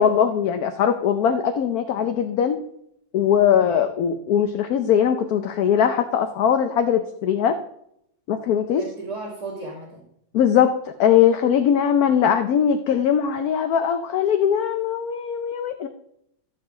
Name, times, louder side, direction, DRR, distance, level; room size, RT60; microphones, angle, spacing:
voice 1, 0.0-2.6 3.1-7.5 8.3-8.8 10.3-10.7 11.0-15.9, left 8 dB, 65° left, 7 dB, 1.0 m, -20 dB
voice 2, 8.6-10.0, right 3 dB, 55° right, -6 dB, 2.7 m, -35 dB
13.5 x 6.8 x 3.7 m, 0.75 s
omnidirectional pair, 2.0 m